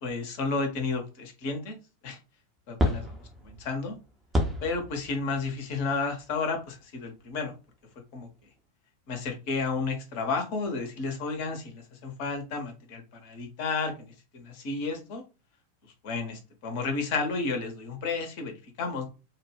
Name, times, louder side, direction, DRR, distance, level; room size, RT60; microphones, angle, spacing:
voice 1, 0.0-1.8 2.0-2.2 2.7-3.0 3.4-4.0 4.6-7.5 8.1-8.3 9.1-15.2 16.0-19.1, left 4 dB, 45° left, 5 dB, 0.6 m, -32 dB
sound 1, 2.8-6.7 7.3-7.4 8.2-8.3, left 1 dB, 10° right, 0.5 m, -31 dB
2.2 x 2.1 x 3.2 m, 0.31 s
figure-of-eight pair, 90°, 0 cm